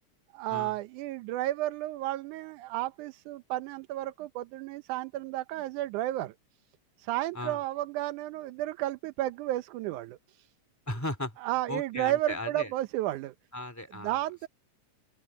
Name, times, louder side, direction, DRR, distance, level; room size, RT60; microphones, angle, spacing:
voice 1, 0.3-6.3 7.0-10.5 11.4-13.3 13.9-14.5, right 15 dB, 90° right, 2.2 m, -32 dB
voice 2, 10.9-11.4 11.7-12.7 13.5-14.2, left 1 dB, 5° left, 2.5 m, -36 dB
open air
omnidirectional pair, 3.4 m